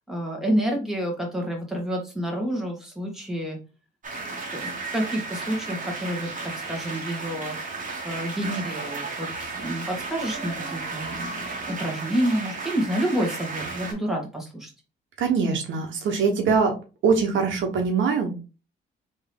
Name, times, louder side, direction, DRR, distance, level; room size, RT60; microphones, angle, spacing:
voice 1, 0.1-3.6 4.2-7.6 8.0-14.7, equal, ahead, 0 dB, 1.7 m, -29 dB
sound 1, 4.0-13.9, right 3 dB, 40° right, 1.4 m, -34 dB
voice 2, 15.2-16.8 17.0-18.4, right 5 dB, 70° right, 3 dB, 1.0 m, -22 dB
3.6 x 3.0 x 3.4 m, 0.31 s
cardioid pair, 90°, 20 cm